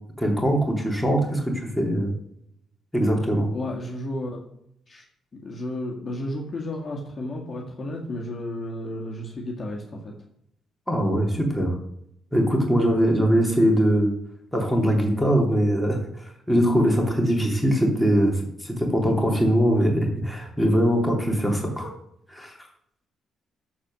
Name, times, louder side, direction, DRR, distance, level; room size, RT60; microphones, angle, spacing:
voice 1, 0.2-2.1 2.9-3.5 10.9-11.7 12.3-14.1 14.5-16.0 16.5-21.9 22.3-22.5, equal, 5° left, 0 dB, 3.1 m, -21 dB
voice 2, 3.5-4.5 4.9-5.0 5.4-10.1, left 1 dB, 35° left, -1 dB, 2.0 m, -32 dB
13.5 x 4.6 x 6.3 m, 0.75 s
cardioid pair, 90°, 0 cm